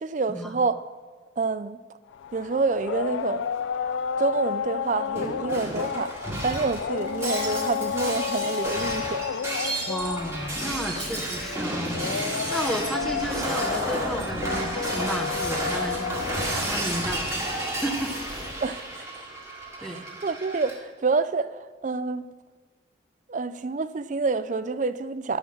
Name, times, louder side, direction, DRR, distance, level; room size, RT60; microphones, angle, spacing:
voice 1, 0.0-0.8 1.4-1.8 2.3-3.5 4.2-6.1 6.4-9.3 18.6-19.2 19.8-22.3 23.3-25.4, right 4 dB, 40° right, 0.4 m, -28 dB
sound 1, 2.1-18.5, left 7 dB, 80° left, 0.4 m, -32 dB
Shatter, 5.1-20.7, right 1 dB, 15° right, 1.8 m, -32 dB
voice 2, 9.9-12.0 12.5-16.1 16.6-17.3 17.7-18.2 19.8-20.0, equal, ahead, 0.8 m, -32 dB
11.0 x 6.2 x 7.3 m
head